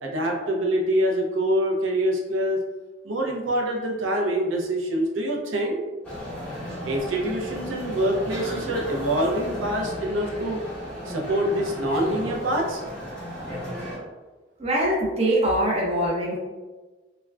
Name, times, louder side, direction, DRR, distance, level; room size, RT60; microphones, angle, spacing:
voice 1, 0.0-2.6 3.0-5.8 6.9-10.6 11.1-12.8, right 1 dB, 85° right, 0 dB, 0.5 m, -25 dB
sound 1, 6.0-14.0, equal, 10° left, 0.8 m, -35 dB
voice 2, 14.6-16.4, right 1 dB, 30° right, -2 dB, 0.5 m, -23 dB
3.4 x 2.2 x 2.3 m, 1.2 s
head